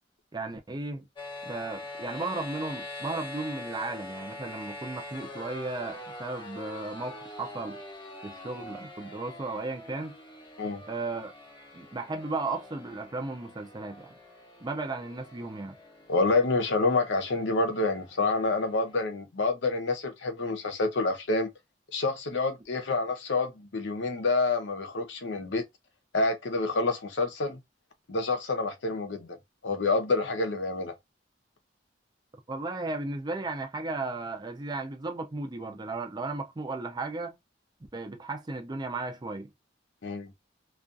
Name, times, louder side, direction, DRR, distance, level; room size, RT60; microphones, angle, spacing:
voice 1, 0.3-1.0 1.5-7.8 8.2-10.2 10.9-11.3 11.7-14.1 14.6-15.7 32.5-37.4 37.9-39.5, right 3 dB, 25° right, 0.4 m, -35 dB
sound 1, 1.2-19.0, left 2 dB, 25° left, 0.7 m, -44 dB
voice 2, 16.1-21.5 21.9-25.6 26.1-27.6 28.1-29.4 29.6-30.9 40.0-40.3, left 3 dB, 70° left, 0.7 m, -28 dB
2.4 x 2.3 x 2.6 m
head